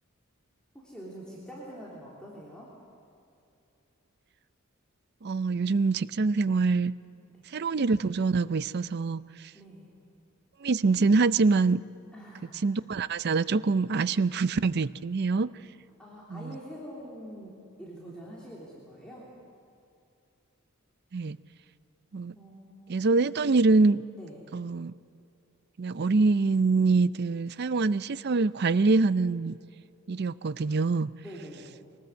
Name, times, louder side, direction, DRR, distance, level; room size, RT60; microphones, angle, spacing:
voice 1, 0.7-2.7 7.3-7.4 9.5-9.9 12.1-12.7 16.0-17.5 17.8-19.3 22.3-23.0 24.2-24.4 31.2-31.7, equal, 5° left, -6 dB, 3.3 m, -45 dB
voice 2, 5.2-6.9 7.5-9.5 10.6-11.8 12.6-15.5 16.3-16.6 21.1-21.4 22.1-22.3 22.9-24.0 24.5-24.9 25.8-29.6 30.1-31.1, right 3 dB, 50° right, 16 dB, 0.5 m, -25 dB
23.0 x 18.5 x 8.1 m, 2.6 s
head